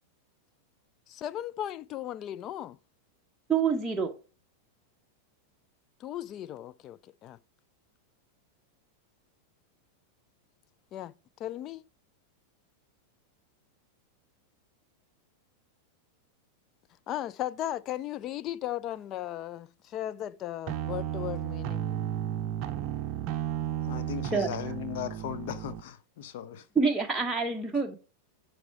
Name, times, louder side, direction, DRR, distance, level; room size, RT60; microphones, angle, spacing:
voice 1, 1.1-2.8 6.0-7.4 10.9-11.1 11.4-11.8 17.1-22.1, left 12 dB, 35° left, 0.3 m, -36 dB
voice 2, 3.5-4.1 24.3-24.5 26.8-28.0, right 5 dB, 5° right, 1.0 m, -26 dB
sound 1, 20.7-25.8, right 11 dB, 40° right, 0.6 m, -33 dB
voice 3, 23.8-26.7, left 10 dB, 50° left, 0.9 m, -37 dB
9.4 x 4.8 x 4.6 m
figure-of-eight pair, 90°, 0 cm